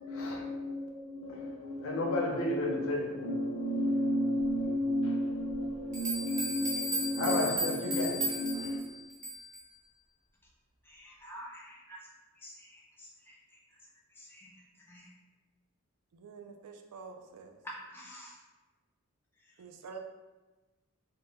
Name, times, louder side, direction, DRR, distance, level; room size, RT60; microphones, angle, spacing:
voice 1, 0.0-8.8, left 1 dB, 65° left, -1 dB, 0.5 m, -32 dB
sound 1, 5.5-5.6 5.9-9.6, right 1 dB, 35° right, 0.6 m, -35 dB
voice 2, 10.8-12.1 12.4-13.6 14.1-15.1 17.6-18.4 19.4-19.6, equal, 10° left, -4 dB, 0.4 m, -49 dB
voice 3, 16.1-17.6 19.6-20.0, right 5 dB, 90° right, 5 dB, 0.3 m, -47 dB
2.1 x 2.1 x 3.2 m, 1.2 s
head